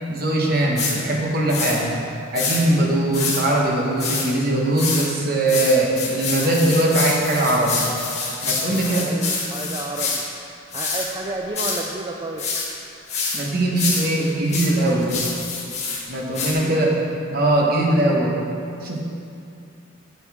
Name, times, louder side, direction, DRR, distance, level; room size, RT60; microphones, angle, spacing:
voice 1, 0.1-1.9 2.3-7.9 8.4-9.1 13.3-15.2 16.1-18.4 18.8-19.0, right 1 dB, 50° right, -2 dB, 1.3 m, -21 dB
sound 1, 0.8-0.9 1.5-1.8 2.3-2.6 3.1-3.4 4.0-4.3 4.8-5.0 5.5-10.2 10.7-11.1 11.5-11.8 12.4-12.7 13.1-13.4 13.8-16.0 16.3-16.5, left 4 dB, 35° left, 1.7 m, -26 dB
voice 2, 8.8-10.2 10.7-12.5 16.5-16.8, right 2 dB, 25° right, 1 dB, 0.4 m, -31 dB
9.5 x 6.9 x 3.6 m, 2.6 s
head